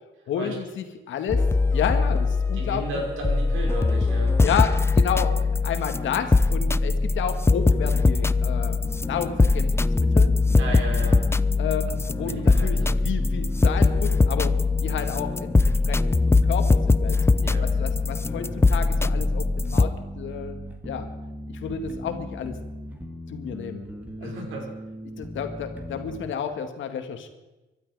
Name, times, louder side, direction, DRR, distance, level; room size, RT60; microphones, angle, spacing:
voice 1, 0.3-1.4 1.7-2.8 4.4-8.8 9.0-10.3 11.6-14.5 14.8-17.2 17.8-20.6 20.8-21.1 21.5-22.5 23.3-23.8 24.2-24.4 25.2-27.3, left 8 dB, 75° left, 7 dB, 2.0 m, -31 dB
sound 1, 1.3-19.9, left 3 dB, 15° left, 0.4 m, -21 dB
voice 2, 2.5-4.4 10.6-11.3 12.2-13.0 17.3-17.7 24.2-24.7, right 2 dB, 85° right, 0 dB, 5.5 m, -34 dB
sound 2, 7.5-26.2, equal, 10° right, 2.2 m, -38 dB
23.5 x 12.0 x 4.9 m, 1.1 s
cardioid pair, 90°, 20 cm